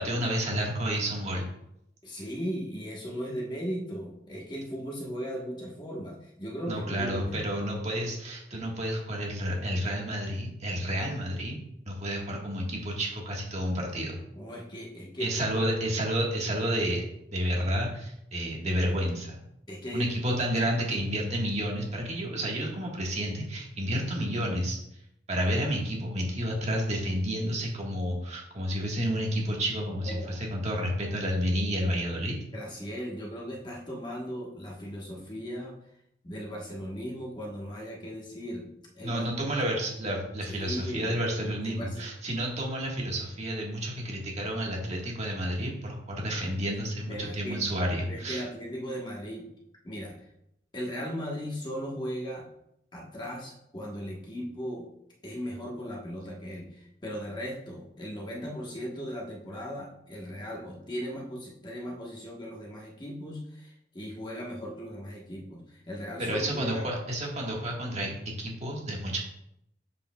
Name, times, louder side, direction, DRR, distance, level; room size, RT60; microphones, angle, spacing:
voice 1, 0.0-1.5 6.7-11.6 11.8-14.2 15.2-17.0 17.3-19.4 19.9-24.8 25.3-32.3 39.0-48.4 66.2-69.2, equal, 40° right, -1 dB, 1.5 m, -30 dB
voice 2, 2.0-7.4 14.3-15.3 19.7-20.4 29.9-30.4 32.5-35.8 36.2-38.7 38.9-39.3 40.5-41.2 41.4-42.0 47.1-47.6 48.0-49.5 49.8-50.1 50.7-52.5 52.9-54.8 55.2-66.8, equal, 25° left, -2 dB, 1.2 m, -37 dB
7.2 x 6.4 x 2.3 m, 0.78 s
head